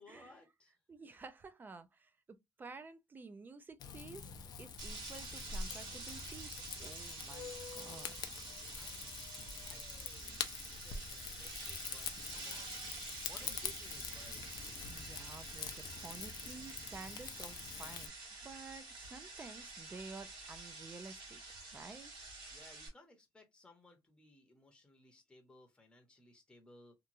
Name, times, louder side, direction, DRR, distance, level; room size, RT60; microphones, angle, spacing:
voice 1, 0.0-0.8 8.4-9.1 9.6-12.8 13.2-14.5 22.5-26.9, left 2 dB, 10° left, 0.8 m, -61 dB
voice 2, 0.9-4.3 4.6-6.5 6.8-8.1 14.9-18.1 18.4-21.4 21.7-22.1, right 4 dB, 25° right, 0.4 m, -52 dB
Rain / Fire, 3.8-18.1, left 7 dB, 60° left, 0.5 m, -46 dB
sound 1, 4.8-22.9, right 3 dB, 90° right, 1.5 m, -48 dB
2.9 x 2.3 x 2.6 m
cardioid pair, 145°, 8 cm